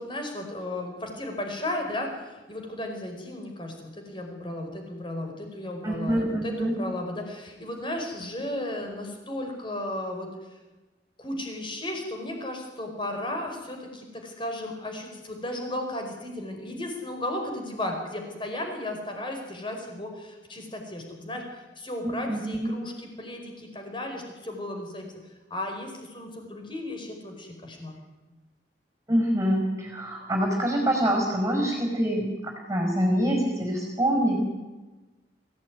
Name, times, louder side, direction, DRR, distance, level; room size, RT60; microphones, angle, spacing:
voice 1, 0.0-10.6 11.2-25.1 25.5-28.0, left 1 dB, 25° left, 3 dB, 5.0 m, -35 dB
voice 2, 5.8-6.8 22.0-22.7 29.1-34.4, equal, 15° right, 2 dB, 5.3 m, -25 dB
25.0 x 16.5 x 9.6 m, 1.2 s
head